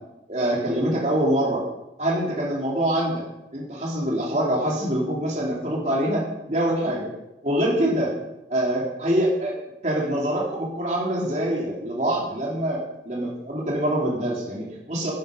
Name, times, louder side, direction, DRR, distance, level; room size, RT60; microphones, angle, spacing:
voice 1, 0.3-1.6 2.0-3.2 3.5-7.1 7.4-8.1 8.5-9.5 9.8-15.1, right 1 dB, 40° right, -4 dB, 3.4 m, -25 dB
12.0 x 10.5 x 5.4 m, 0.91 s
head